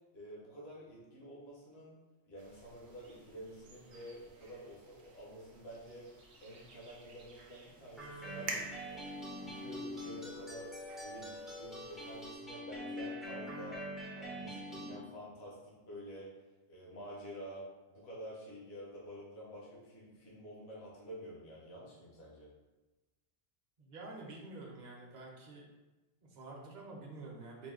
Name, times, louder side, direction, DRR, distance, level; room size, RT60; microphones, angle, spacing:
voice 1, 0.1-2.0 2.3-9.0 9.3-13.8 14.1-16.3 16.7-22.5, equal, 75° left, -5 dB, 1.2 m, -49 dB
sound 1, 2.4-12.3, right 2 dB, 85° right, 0.9 m, -51 dB
sound 2, 8.0-15.0, equal, ahead, 0.3 m, -44 dB
voice 2, 23.8-25.7 26.2-27.7, right 2 dB, 45° right, -1 dB, 0.8 m, -48 dB
4.1 x 2.1 x 3.6 m, 1.1 s
omnidirectional pair, 1.1 m